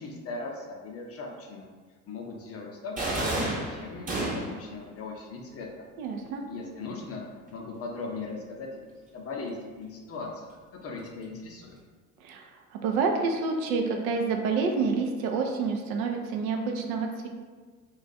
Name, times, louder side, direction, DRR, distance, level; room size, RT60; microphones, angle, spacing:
voice 1, 0.0-1.7 2.1-5.7 6.5-7.2 7.5-8.9 9.1-10.6 10.8-11.8, left 3 dB, 30° left, 0 dB, 0.6 m, -39 dB
sound 1, 3.0-4.7, right 1 dB, 20° right, 0.8 m, -30 dB
voice 2, 6.0-6.4 12.2-12.5 12.8-17.3, right 4 dB, 65° right, 3 dB, 0.6 m, -28 dB
2.4 x 2.3 x 3.9 m, 1.4 s
figure-of-eight pair, 60°, 45 cm